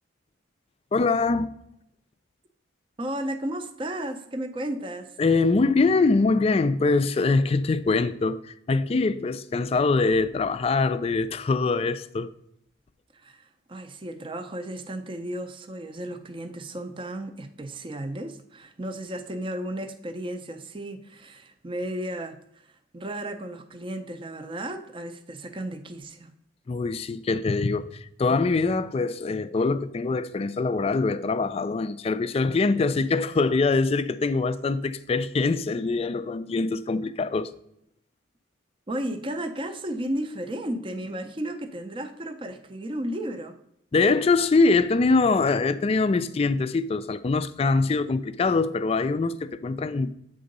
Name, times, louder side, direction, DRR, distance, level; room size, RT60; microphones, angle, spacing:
voice 1, 0.9-1.5 5.2-12.3 26.7-37.5 43.9-50.1, left 3 dB, 30° left, 0.3 m, -23 dB
voice 2, 3.0-5.2 13.1-26.3 38.9-43.5, right 1 dB, 25° right, 0.5 m, -34 dB
7.9 x 3.7 x 5.2 m
head